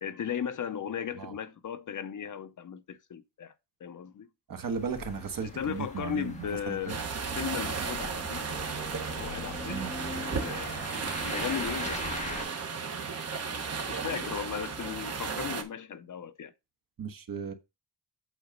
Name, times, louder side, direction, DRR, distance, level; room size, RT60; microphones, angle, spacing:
voice 1, 0.0-3.5 3.8-4.3 5.4-7.1 7.3-8.4 9.1-10.8 11.2-12.0 13.9-16.5, left 8 dB, 50° left, 0.7 m, -36 dB
voice 2, 4.5-6.9 7.4-7.5 9.7-9.9 17.0-17.5, right 6 dB, 50° right, 1.3 m, -36 dB
sound 1, 4.7-12.4, left 2 dB, 15° left, 1.6 m, -41 dB
sound 2, 6.9-15.6, right 5 dB, 35° right, 1.2 m, -34 dB
8.3 x 4.0 x 5.2 m
wide cardioid pair, 175°, 41 cm